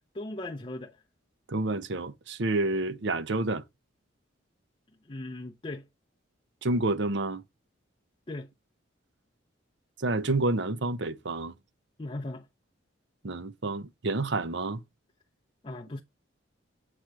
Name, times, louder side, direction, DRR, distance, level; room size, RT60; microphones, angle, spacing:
voice 1, 0.1-1.0 5.1-5.9 8.3-8.5 12.0-12.5 15.6-16.0, left 2 dB, 25° left, 0.6 m, -38 dB
voice 2, 1.5-3.6 6.6-7.4 10.0-11.5 13.2-14.8, right 2 dB, 60° right, 0.7 m, -29 dB
7.8 x 3.0 x 4.7 m
head